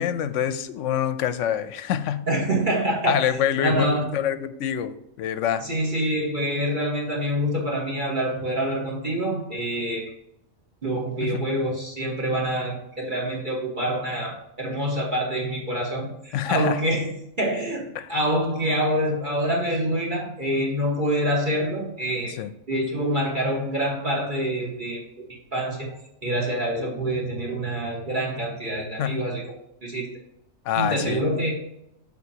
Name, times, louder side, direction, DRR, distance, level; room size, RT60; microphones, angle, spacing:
voice 1, 0.0-2.2 3.1-5.6 11.2-11.5 16.3-16.8 17.9-18.1 22.4-22.5 29.0-29.2 30.7-31.2, left 9 dB, 75° left, 13 dB, 0.9 m, -26 dB
voice 2, 2.3-3.2 3.6-4.1 5.6-10.1 10.8-22.4 22.7-25.0 25.5-25.9 26.2-29.4 29.8-30.1 30.7-31.5, right 1 dB, 40° right, -2 dB, 1.6 m, -26 dB
13.0 x 4.3 x 2.8 m, 0.81 s
omnidirectional pair, 1.4 m